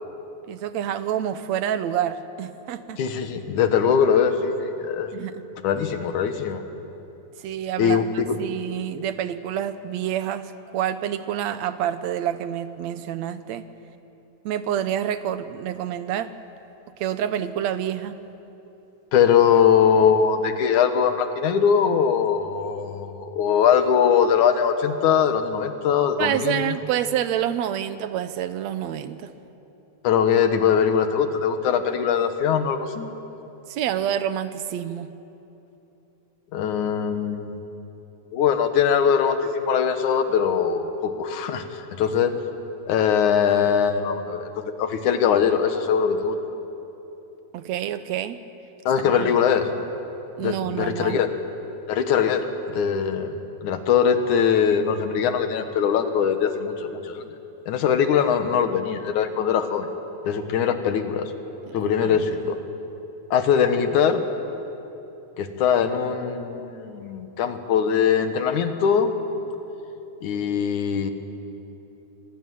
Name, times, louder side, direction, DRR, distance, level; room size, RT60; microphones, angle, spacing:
voice 1, 0.5-3.0 5.1-5.4 7.4-13.7 14.5-16.3 17.0-18.2 26.2-29.3 33.7-35.1 47.5-48.4 49.0-49.3 50.4-51.2 61.8-62.2, right 10 dB, 75° right, 12 dB, 1.9 m, -28 dB
voice 2, 3.0-5.1 5.6-6.6 7.8-8.4 19.1-26.8 30.0-33.1 36.5-37.6 38.3-42.3 42.9-46.4 48.9-49.7 50.4-51.3 51.9-53.3 53.6-57.3 57.7-59.9 60.2-61.3 61.7-62.6 63.3-64.3 65.4-69.1 70.2-71.1, left 7 dB, 85° left, 8 dB, 2.8 m, -21 dB
25.5 x 19.0 x 9.3 m, 3.0 s
omnidirectional pair, 3.4 m